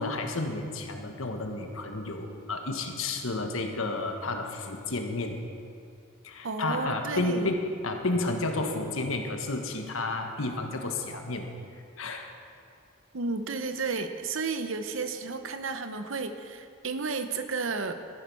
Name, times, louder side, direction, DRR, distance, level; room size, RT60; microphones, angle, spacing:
voice 1, 0.0-5.4 6.2-11.5 12.0-12.3, left 2 dB, 75° left, 4 dB, 1.4 m, -31 dB
voice 2, 6.4-7.5 13.1-17.9, right 4 dB, 65° right, 8 dB, 0.9 m, -32 dB
14.0 x 11.0 x 5.5 m, 2.3 s
head